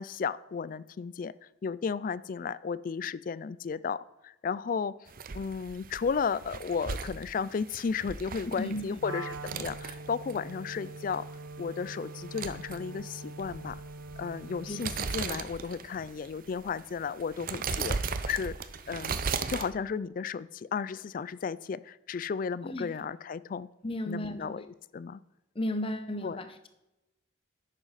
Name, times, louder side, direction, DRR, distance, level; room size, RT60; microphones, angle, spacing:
voice 1, 0.0-1.3 1.6-4.9 5.3-11.3 11.6-13.8 14.2-18.0 18.3-18.6 18.9-23.7 24.1-24.7 24.9-25.2 26.2-26.4, left 5 dB, 45° left, 19 dB, 0.3 m, -34 dB
sound 1, 5.1-19.7, right 5 dB, 45° right, 0.6 m, -38 dB
voice 2, 8.6-8.9 14.7-14.8 15.2-15.4 22.6-22.9 23.8-24.6 25.5-26.7, left 1 dB, 30° left, 9 dB, 0.9 m, -34 dB
Wind instrument woodwind instrument, 9.0-15.4, right 2 dB, 75° right, 1.0 m, -43 dB
11.0 x 8.9 x 4.1 m, 0.94 s
head